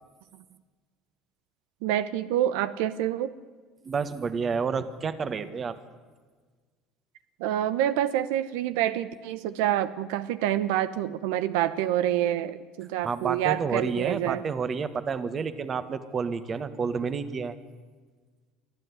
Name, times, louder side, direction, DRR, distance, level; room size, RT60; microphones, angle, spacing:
voice 1, 1.8-3.3 7.4-14.4, right 12 dB, 85° right, 14 dB, 0.9 m, -27 dB
voice 2, 3.8-5.8 13.0-17.6, right 5 dB, 30° right, 12 dB, 1.5 m, -30 dB
24.0 x 14.5 x 9.7 m, 1.5 s
cardioid pair, 135°, 0 cm